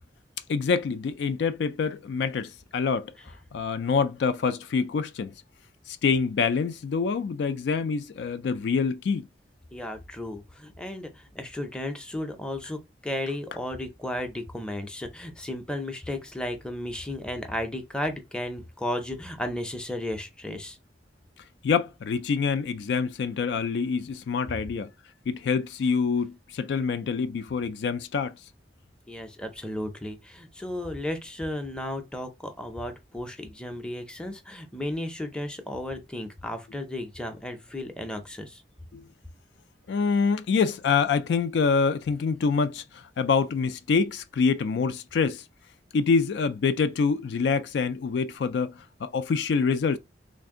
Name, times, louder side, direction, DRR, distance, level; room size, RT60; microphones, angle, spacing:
voice 1, 0.5-3.1 3.5-5.3 5.9-9.3 21.6-24.9 25.3-28.3 38.9-39.0 39.9-45.4 45.9-48.7 49.0-50.0, left 5 dB, 70° left, 0.3 m, -26 dB
voice 2, 9.7-20.8 29.1-38.6, left 1 dB, 5° left, 0.5 m, -34 dB
3.4 x 2.6 x 3.6 m
head